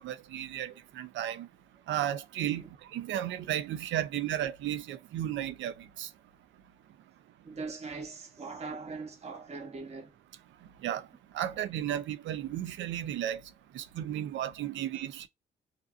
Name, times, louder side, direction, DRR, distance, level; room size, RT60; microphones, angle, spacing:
voice 1, 0.0-1.5 1.9-2.6 2.9-5.7 6.0-6.1 10.8-11.0 11.3-13.4 13.7-15.3, right 11 dB, 70° right, 0.4 m, -34 dB
voice 2, 7.4-10.1, right 4 dB, 35° right, 0.8 m, -41 dB
2.5 x 2.4 x 2.3 m
cardioid pair, 90°, 20 cm